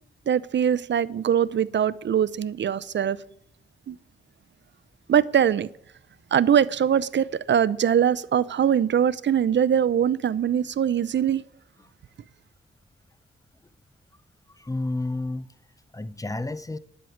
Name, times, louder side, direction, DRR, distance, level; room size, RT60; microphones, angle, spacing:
voice 1, 0.3-3.2 3.9-4.0 5.1-5.7 6.3-11.4, right 9 dB, 60° right, 0.5 m, -22 dB
voice 2, 14.5-15.5 15.9-16.8, left 2 dB, 15° left, 0.6 m, -30 dB
11.0 x 6.4 x 9.2 m
cardioid pair, 90°, 21 cm